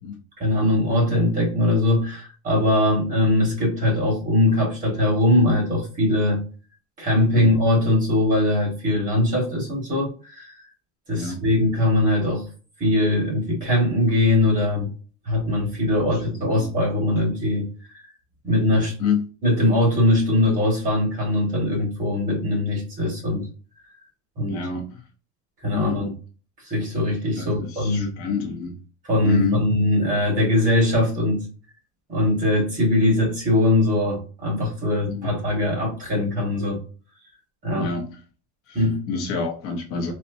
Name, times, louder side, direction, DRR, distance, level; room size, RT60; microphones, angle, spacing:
voice 1, 0.4-6.4 7.0-10.5 11.1-12.5 12.8-14.9 15.2-17.7 17.9-18.0 18.4-18.9 19.4-23.5 24.4-24.6 25.6-26.1 26.6-28.1 29.1-31.5 32.1-36.8 37.6-37.9 38.7-39.0, left 1 dB, 25° right, -1 dB, 1.5 m, -21 dB
voice 2, 16.3-16.8 19.0-19.2 24.5-25.0 25.7-26.0 27.4-28.7 29.2-29.6 35.1-35.3 37.7-38.1 38.7-40.1, left 6 dB, 45° left, 1 dB, 0.7 m, -28 dB
4.2 x 2.1 x 2.6 m, 0.37 s
cardioid pair, 170°, 33 cm